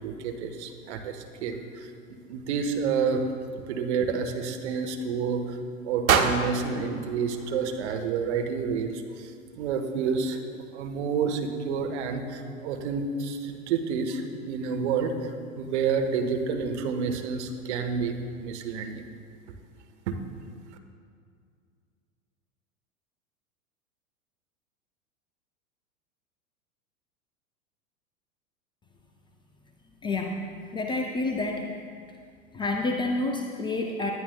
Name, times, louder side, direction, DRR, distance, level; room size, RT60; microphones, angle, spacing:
voice 1, 0.0-1.6 2.3-3.2 3.7-5.4 5.8-9.3 9.6-10.4 10.7-15.1 15.6-19.1 20.1-20.2, right 5 dB, 55° right, 5 dB, 1.2 m, -29 dB
sound 1, 6.1-8.2, right 6 dB, 75° right, 0.9 m, -27 dB
voice 2, 30.0-31.7 32.5-34.1, left 2 dB, 10° left, 3 dB, 0.4 m, -29 dB
19.0 x 10.5 x 2.2 m, 2.2 s
figure-of-eight pair, 90°, 42 cm